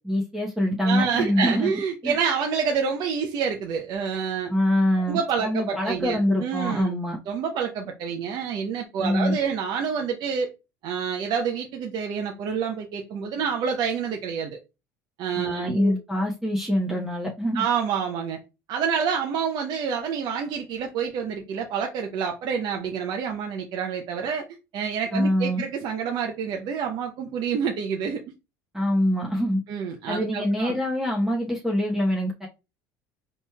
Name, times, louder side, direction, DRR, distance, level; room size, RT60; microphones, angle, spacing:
voice 1, 0.0-1.7 2.0-2.2 4.5-7.2 9.0-9.3 15.3-17.6 25.1-25.6 28.7-29.6 30.1-32.5, equal, 5° right, 0.9 m, -24 dB
voice 2, 0.8-4.5 5.1-6.9 7.3-10.5 10.8-14.6 15.2-16.0 17.5-18.4 18.7-24.4 24.7-28.2 29.7-30.7, right 6 dB, 55° right, 0.7 m, -28 dB
4.2 x 3.1 x 2.3 m
supercardioid pair, 85°, 8 cm